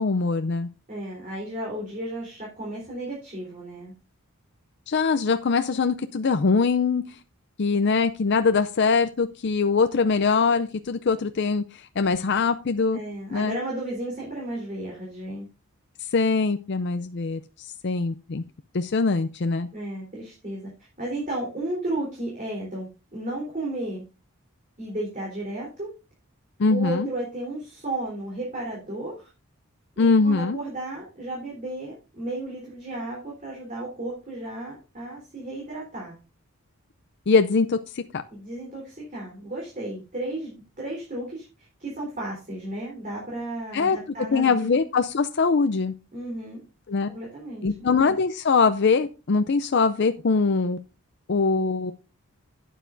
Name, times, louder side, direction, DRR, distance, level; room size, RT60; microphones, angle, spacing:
voice 1, 0.0-0.7 4.9-7.2 7.6-13.0 13.3-13.6 16.0-18.4 18.7-19.7 26.6-27.1 30.0-30.6 37.3-38.2 43.7-44.0 44.3-45.9 46.9-47.1 47.6-50.8 51.3-51.9, left 4 dB, 50° left, 9 dB, 0.5 m, -22 dB
voice 2, 0.9-3.9 12.9-15.4 19.7-20.7 21.0-24.0 24.8-25.9 26.7-29.3 30.0-36.2 38.3-44.8 46.1-46.6 47.1-47.9, right 1 dB, 35° right, -4 dB, 3.8 m, -33 dB
12.0 x 9.2 x 2.6 m, 0.31 s
head